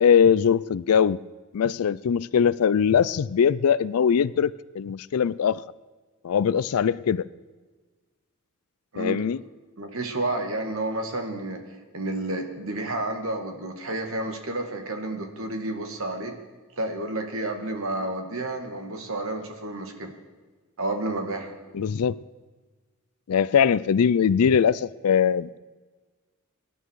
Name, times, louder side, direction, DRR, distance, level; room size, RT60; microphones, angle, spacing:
voice 1, 0.0-1.2 1.5-5.6 6.2-7.2 9.0-9.4 21.7-22.1 23.3-25.6, left 7 dB, 85° left, 19 dB, 0.4 m, -21 dB
voice 2, 9.8-11.6 11.9-16.3 16.7-20.1 20.8-21.5, right 2 dB, 70° right, 5 dB, 2.2 m, -30 dB
24.5 x 11.0 x 4.7 m, 1.4 s
head